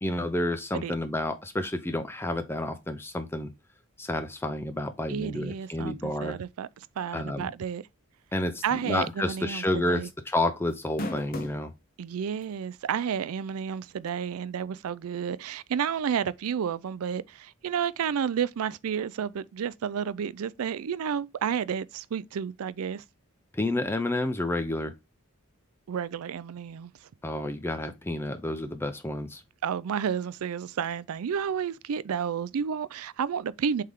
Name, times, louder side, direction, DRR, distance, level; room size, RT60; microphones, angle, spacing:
voice 1, 0.0-3.5 4.0-6.4 7.1-7.5 8.3-11.7 23.5-24.9 27.2-29.4, left 1 dB, 10° left, 0.4 m, -30 dB
voice 2, 5.1-6.7 7.0-7.8 8.6-10.1 12.0-23.0 25.9-26.9 29.6-33.8, right 7 dB, 80° right, 0.4 m, -31 dB
sound 1, 9.0-9.3 9.6-9.7 10.7-11.6 12.4-12.5 14.1-14.2, left 1 dB, 40° left, 1.0 m, -35 dB
7.5 x 3.4 x 3.6 m
head